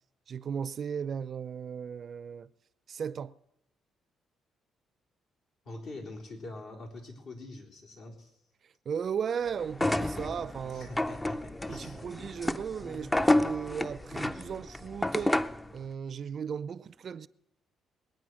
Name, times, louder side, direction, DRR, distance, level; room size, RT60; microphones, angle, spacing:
voice 1, 0.3-2.5 2.9-3.3 8.6-10.9 11.7-15.4 15.7-17.3, right 7 dB, 55° right, 0.5 m, -36 dB
voice 2, 5.6-8.3 10.7-12.0, left 2 dB, 70° left, 4.1 m, -44 dB
sound 1, 9.7-15.7, left 1 dB, 15° left, 0.5 m, -30 dB
21.0 x 9.2 x 6.3 m
cardioid pair, 90°, 0 cm